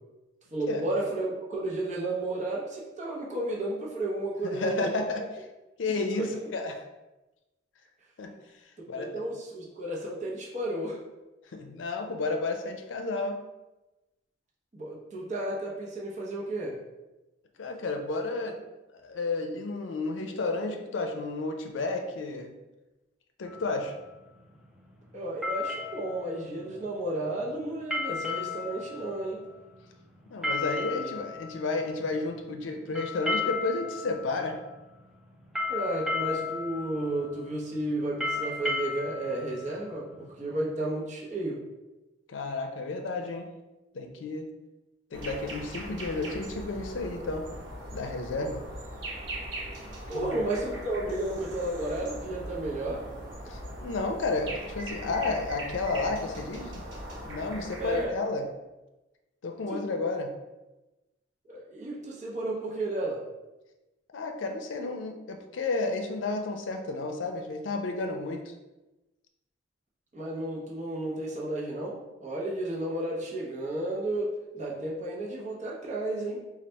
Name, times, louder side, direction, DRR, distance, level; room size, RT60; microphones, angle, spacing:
voice 1, 0.5-5.0 6.2-6.3 8.9-11.0 14.7-16.7 25.1-29.4 30.9-31.1 35.7-41.6 50.1-53.0 57.8-58.1 59.7-59.8 61.5-63.2 70.1-74.3 74.5-76.4, right 1 dB, 40° right, -5 dB, 0.8 m, -32 dB
voice 2, 4.4-5.2 5.8-6.8 8.2-8.3 8.9-9.1 11.5-13.4 17.6-18.6 18.9-22.5 23.4-23.9 30.3-34.6 42.3-43.5 43.9-44.5 45.1-47.4 47.9-48.6 50.1-50.3 53.5-56.8 57.2-58.5 59.4-60.3 64.1-68.5, left 3 dB, 85° left, 4 dB, 0.5 m, -32 dB
sound 1, 23.5-40.6, left 3 dB, 5° right, 0.4 m, -35 dB
sound 2, 45.1-58.1, right 1 dB, 85° right, 0.9 m, -40 dB
4.1 x 2.4 x 3.3 m, 1.1 s
head